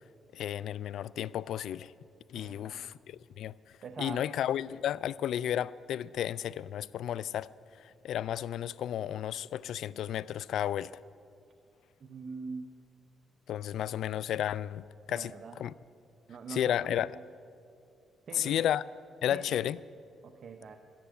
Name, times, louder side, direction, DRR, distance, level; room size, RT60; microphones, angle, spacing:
voice 1, 0.3-1.9 2.3-3.5 4.0-7.5 8.0-10.9 13.5-15.7 16.5-17.1 18.3-18.8 19.2-19.8, left 10 dB, 75° left, 0.3 m, -33 dB
voice 2, 2.3-2.9 3.8-4.2 12.0-12.7 15.1-15.6 16.3-17.0 18.3-18.7 19.3-19.6 20.2-20.8, right 4 dB, 50° right, 0.9 m, -43 dB
13.0 x 10.0 x 9.2 m
cardioid pair, 90°, 0 cm